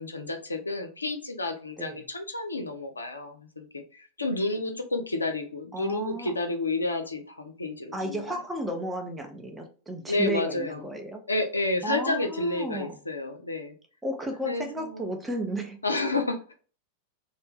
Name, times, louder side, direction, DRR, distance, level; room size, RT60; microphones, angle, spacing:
voice 1, 0.0-8.4 10.1-10.8 11.3-13.7 14.5-15.1 15.8-16.5, left 2 dB, 80° left, 6 dB, 0.4 m, -30 dB
voice 2, 5.7-6.3 7.9-11.2 11.8-13.0 14.0-15.8, right 1 dB, 10° right, 3 dB, 0.6 m, -33 dB
2.7 x 2.0 x 3.4 m, 0.40 s
figure-of-eight pair, 90°, 0 cm